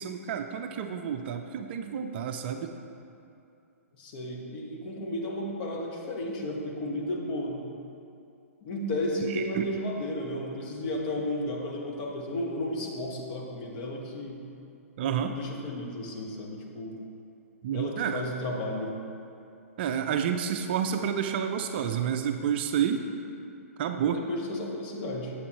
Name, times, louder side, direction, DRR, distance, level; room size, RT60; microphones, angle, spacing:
voice 1, 0.0-2.7 9.3-9.7 15.0-15.4 17.6-18.2 19.8-23.1 23.8-24.2, right 8 dB, 45° right, 6 dB, 0.4 m, -29 dB
voice 2, 4.0-7.6 8.6-14.4 15.2-16.9 17.7-18.9 24.1-25.3, left 1 dB, 40° left, -1 dB, 1.2 m, -33 dB
8.4 x 7.9 x 3.0 m, 2.6 s
figure-of-eight pair, 120°, 8 cm